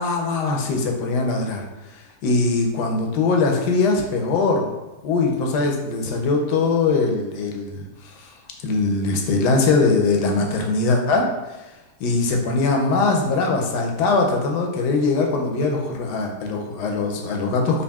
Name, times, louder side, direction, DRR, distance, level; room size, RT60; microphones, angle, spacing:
voice 1, 0.0-4.7 5.0-8.3 8.6-11.5 12.0-17.8, left 3 dB, 80° left, 1 dB, 1.2 m, -21 dB
5.2 x 2.5 x 2.3 m, 1.1 s
omnidirectional pair, 1.8 m